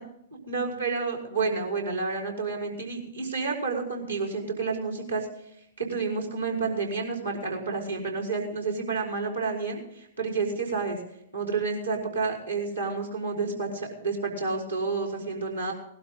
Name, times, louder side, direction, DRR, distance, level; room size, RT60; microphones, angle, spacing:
voice 1, 0.5-5.3 5.8-11.0 11.3-15.7, right 4 dB, 90° right, 0 dB, 5.3 m, -30 dB
19.0 x 12.5 x 4.0 m, 0.74 s
figure-of-eight pair, 110°, 0 cm